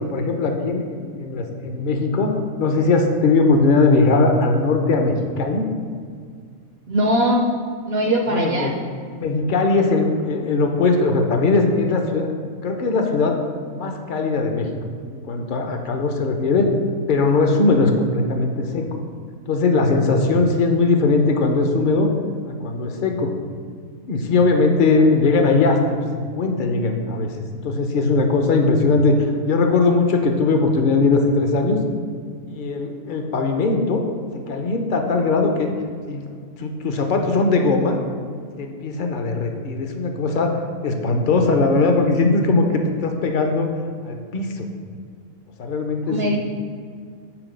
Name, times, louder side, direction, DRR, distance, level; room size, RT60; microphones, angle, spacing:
voice 1, 0.0-5.7 8.3-8.7 9.1-12.3 12.6-13.4 13.7-14.8 15.1-16.7 17.1-19.0 19.5-22.1 22.5-23.3 24.1-27.3 27.6-31.8 32.5-34.0 34.5-35.7 36.1-38.0 38.6-40.5 40.8-43.7 44.0-44.7 45.6-46.4, left 3 dB, 45° left, 4 dB, 0.7 m, -20 dB
voice 2, 6.9-7.5 7.9-8.7 46.1-46.4, equal, 60° right, 2 dB, 0.7 m, -20 dB
6.0 x 4.4 x 6.4 m, 2.1 s
omnidirectional pair, 1.5 m